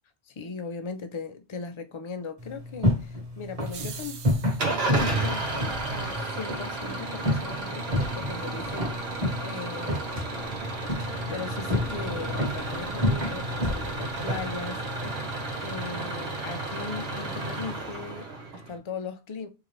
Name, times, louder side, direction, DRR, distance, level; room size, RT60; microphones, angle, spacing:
voice 1, 0.3-4.3 4.7-10.4 11.3-15.2 15.6-19.5, left 5 dB, 40° left, 0.4 m, -38 dB
sound 1, 2.4-15.9, left 1 dB, 35° right, 1.2 m, -31 dB
sound 2, 3.6-4.9, right 7 dB, 85° right, 0.9 m, -42 dB
Engine starting / Idling, 4.6-18.8, right 2 dB, 65° right, 1.1 m, -32 dB
3.8 x 2.9 x 3.1 m
omnidirectional pair, 1.1 m